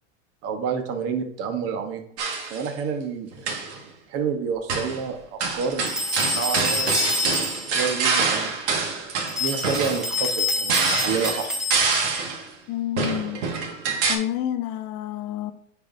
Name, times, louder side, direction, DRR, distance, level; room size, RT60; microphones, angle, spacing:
voice 1, 0.4-2.0 2.5-6.0 6.3-8.5 9.4-11.5, right 6 dB, 40° right, 1.1 m, -29 dB
sound 1, 2.2-2.7 3.3-3.8 4.7-5.0 5.4-12.5 13.0-14.2, right 4 dB, 65° right, 1.7 m, -26 dB
sound 2, 5.9-7.8 9.3-12.2, left 3 dB, ahead, 1.1 m, -27 dB
voice 2, 12.7-13.4 14.1-15.5, left 12 dB, 45° left, 0.9 m, -28 dB
9.9 x 4.7 x 2.6 m
hypercardioid pair, 115°, 37 cm